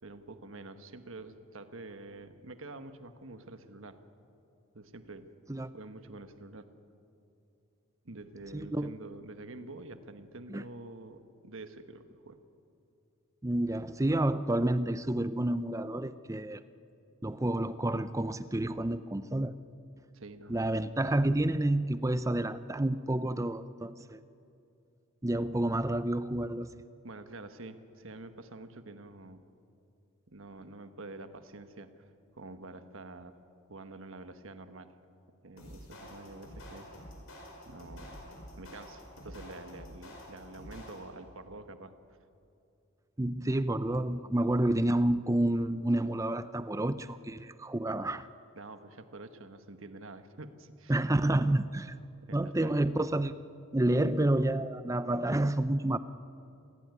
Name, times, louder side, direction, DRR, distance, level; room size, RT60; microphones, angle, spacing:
voice 1, 0.0-4.0 4.7-5.3 5.7-6.7 8.0-12.4 20.1-20.6 27.0-29.4 30.3-32.1 32.3-33.4 33.7-34.9 35.4-36.9 37.6-38.3 38.6-41.9 48.5-51.0 52.3-52.8, right 2 dB, 60° right, 9 dB, 1.4 m, -47 dB
voice 2, 8.5-8.9 10.5-10.6 13.4-16.6 17.2-19.5 20.5-24.2 25.2-26.7 43.2-48.3 50.9-51.9 52.3-53.4 53.7-56.0, right 1 dB, 15° right, 13 dB, 0.5 m, -29 dB
sound 1, 35.6-41.3, equal, 65° left, 5.6 m, -48 dB
26.5 x 17.5 x 9.6 m, 2.7 s
head